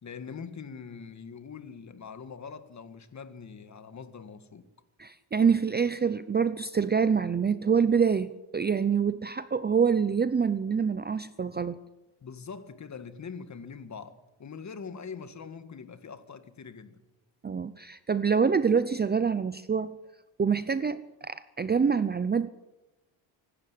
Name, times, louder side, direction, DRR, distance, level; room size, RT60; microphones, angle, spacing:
voice 1, 0.0-4.7 12.2-17.0, left 6 dB, 35° left, 1.8 m, -43 dB
voice 2, 5.0-11.8 17.4-20.0 20.4-22.5, right 6 dB, 20° right, 0.6 m, -26 dB
25.0 x 12.0 x 9.7 m
cardioid pair, 130°, 48 cm